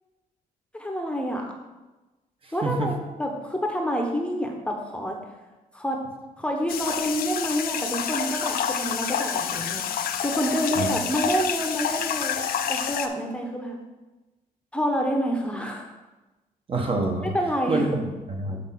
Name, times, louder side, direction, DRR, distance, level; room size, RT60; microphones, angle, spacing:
voice 1, 0.7-1.5 2.5-5.2 5.7-6.0 6.4-9.9 10.2-12.4 12.7-13.8 14.7-15.9 17.3-17.8, equal, 5° left, 2 dB, 0.9 m, -27 dB
voice 2, 2.4-2.9 10.8-10.9 16.7-17.3 17.7-18.6, right 2 dB, 35° right, 2 dB, 1.1 m, -27 dB
sound 1, 6.7-13.1, left 8 dB, 75° left, 0.6 m, -28 dB
8.1 x 4.1 x 5.9 m, 1.1 s
cardioid pair, 125°, 15 cm